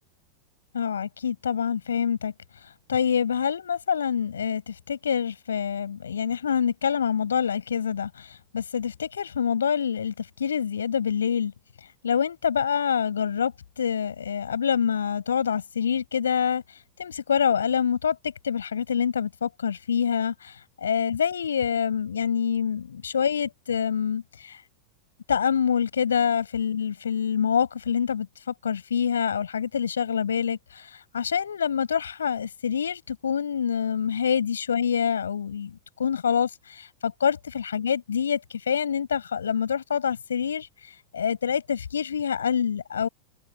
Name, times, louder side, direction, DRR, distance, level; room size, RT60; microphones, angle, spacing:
voice 1, 0.7-2.3 2.6-11.5 12.0-24.6 25.3-43.1, left 7 dB, 70° left, 8.0 m, -26 dB
figure-of-eight pair, 90°, 0 cm